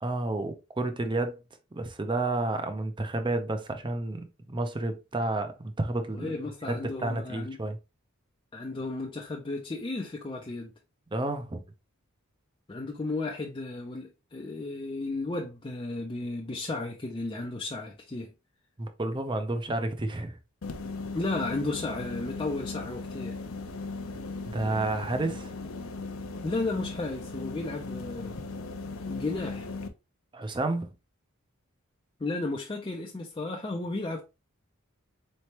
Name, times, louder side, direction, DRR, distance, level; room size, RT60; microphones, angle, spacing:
voice 1, 0.0-1.4 1.7-6.3 6.7-7.8 11.1-11.6 18.8-20.4 24.4-25.5 30.3-30.9, right 2 dB, 20° right, 0.6 m, -30 dB
voice 2, 6.1-7.6 8.5-10.7 12.7-18.3 21.1-23.4 26.4-28.3 29.1-29.7 32.2-34.2, left 2 dB, 20° left, 0.4 m, -34 dB
sound 1, 20.6-29.9, left 3 dB, 70° left, 0.5 m, -38 dB
4.2 x 3.2 x 2.9 m
head